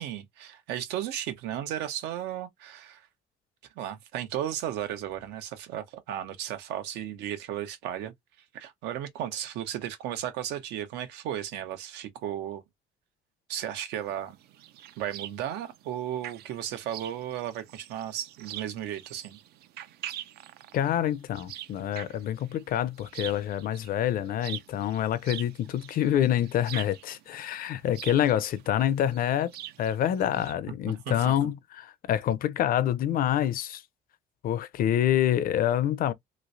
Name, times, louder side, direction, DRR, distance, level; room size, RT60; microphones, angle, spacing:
voice 1, 0.0-3.1 3.8-8.1 8.5-12.6 13.5-14.4 15.0-19.4 30.7-31.3, right 11 dB, 90° right, 1.0 m, -35 dB
sound 1, 13.9-30.5, right 12 dB, 70° right, 0.5 m, -44 dB
voice 2, 20.7-29.5 29.8-33.8 34.4-36.1, left 11 dB, 60° left, 0.6 m, -27 dB
3.1 x 3.1 x 2.6 m
cardioid pair, 110°, 17 cm